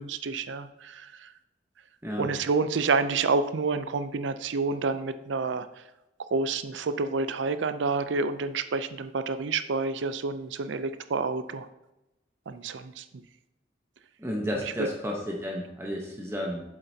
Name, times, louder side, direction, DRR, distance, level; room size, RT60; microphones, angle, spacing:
voice 1, 0.0-1.3 2.2-5.8 6.3-11.7 12.5-13.2 14.6-14.9, right 4 dB, 90° right, 11 dB, 0.5 m, -29 dB
voice 2, 14.2-16.6, equal, 15° right, -1 dB, 0.9 m, -32 dB
7.8 x 7.5 x 2.8 m, 0.95 s
head